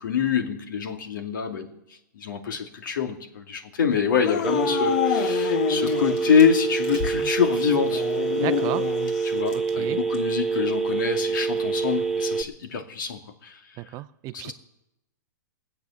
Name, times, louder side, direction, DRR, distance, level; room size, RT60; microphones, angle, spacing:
voice 1, 0.0-1.8 2.1-8.0 9.2-13.6 14.3-14.5, left 7 dB, 75° left, 5 dB, 2.3 m, -25 dB
Dog / Siren, 4.2-6.4 6.7-6.8 7.8-9.4, left 10 dB, 60° left, 1.0 m, -27 dB
Telephone, 4.4-12.4, right 5 dB, ahead, 0.7 m, -26 dB
sound 1, 5.4-8.9 9.4-9.8 10.1-10.5 10.8-11.0, left 4 dB, 45° left, 3.2 m, -40 dB
voice 2, 8.4-8.9 9.8-10.0 13.8-14.5, right 17 dB, 35° right, 15 dB, 0.6 m, -32 dB
20.0 x 7.8 x 7.2 m, 0.88 s
hypercardioid pair, 130°, 10 cm